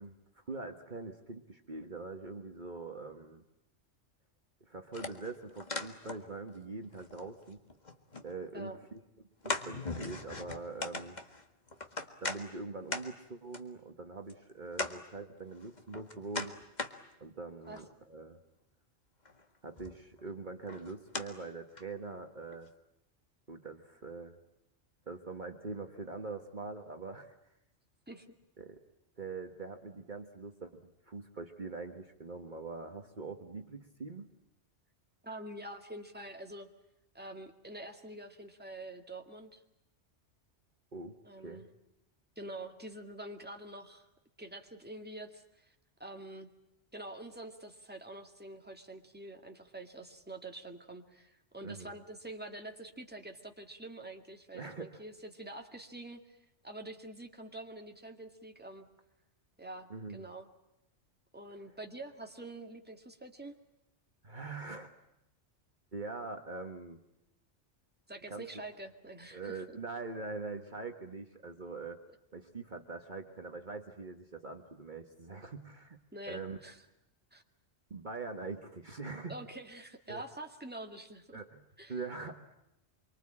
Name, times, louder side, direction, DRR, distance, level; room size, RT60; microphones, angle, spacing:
voice 1, 0.0-3.4 4.6-7.6 8.2-9.0 9.4-11.2 12.2-16.6 17.2-18.4 19.6-22.7 23.5-24.4 25.1-27.3 28.6-28.8 29.2-34.3 40.9-41.2 41.4-41.6 51.6-51.9 54.5-55.0 59.9-60.3 64.2-64.9 65.9-67.0 68.3-68.4 69.3-72.0 72.3-76.0 76.3-76.6 77.9-79.4 80.1-80.2 81.3-81.6 81.9-82.5, right 3 dB, 40° right, 5 dB, 1.6 m, -43 dB
sound 1, 4.9-6.6 6.8-8.3 8.7-8.8 9.4-12.4 12.9-13.0 13.5-13.6 14.3-14.4 14.7-15.0 15.5-16.9 17.4-17.9 19.3-19.4 19.8-20.2 20.7-21.3 21.8-21.9 22.5-22.6, left 3 dB, 35° left, 1.9 m, -39 dB
voice 2, 35.2-36.7 37.1-39.6 41.2-41.7 42.4-44.1 44.4-45.7 46.0-46.5 46.9-56.4 56.6-58.9 59.6-60.5 61.3-63.6 68.1-69.6 76.1-76.8 77.3-77.4 79.3-81.4 81.8-82.0, right 1 dB, 10° right, 4 dB, 2.1 m, -46 dB
26.0 x 24.5 x 8.8 m, 0.88 s
omnidirectional pair, 1.2 m